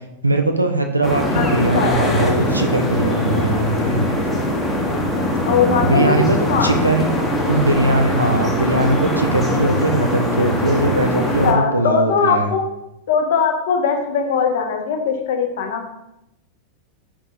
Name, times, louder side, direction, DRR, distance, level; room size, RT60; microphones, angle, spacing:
voice 1, 0.2-4.0 5.8-7.1 7.5-12.5, right 2 dB, 85° right, 4 dB, 0.4 m, -20 dB
sound 1, 1.0-11.5, left 1 dB, 10° left, 0.8 m, -21 dB
voice 2, 1.3-2.3 5.4-6.7 11.4-12.7 13.1-15.9, left 5 dB, 55° left, 4 dB, 0.7 m, -20 dB
4.5 x 3.6 x 2.6 m, 0.86 s
figure-of-eight pair, 90°, 0 cm